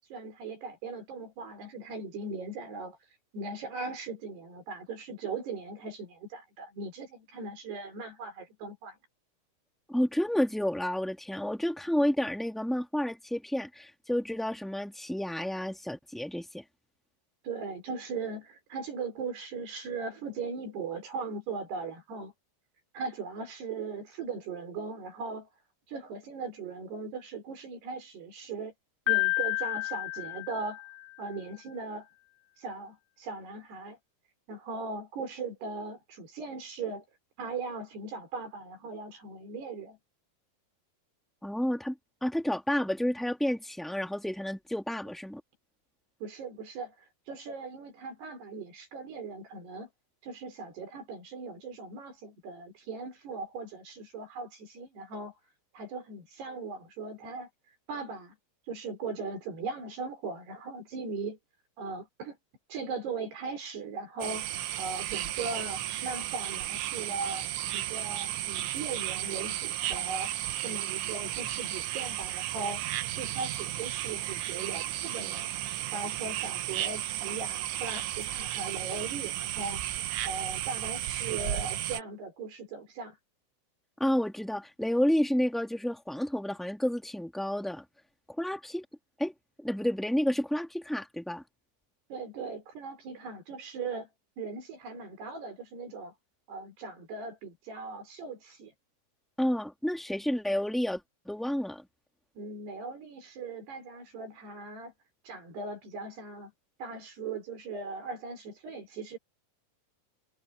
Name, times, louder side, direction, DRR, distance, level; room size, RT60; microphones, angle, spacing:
voice 1, 0.1-3.0 3.3-9.0 17.4-22.3 22.9-25.5 25.9-28.7 29.1-30.9 31.2-32.1 32.6-34.0 34.5-37.0 37.4-40.0 46.2-46.9 47.3-49.9 50.2-55.4 55.7-57.5 57.9-58.4 58.7-61.4 61.8-62.4 62.7-67.5 67.7-70.3 70.6-72.8 73.2-75.5 75.9-79.8 80.2-83.2 92.1-94.1 94.4-96.1 96.5-98.7 102.4-104.9 105.2-106.5 106.8-109.2, right 4 dB, 60° right, 6.6 m, -39 dB
voice 2, 9.9-16.6 41.4-41.9 42.2-45.4 84.0-87.8 88.4-88.8 89.2-89.3 89.6-91.4 99.4-101.0 101.2-101.8, equal, ahead, 1.1 m, -30 dB
Piano, 29.1-31.2, left 23 dB, 70° left, 9.3 m, -30 dB
sound 1, 64.2-82.0, right 13 dB, 80° right, 3.7 m, -34 dB
omnidirectional pair, 5.4 m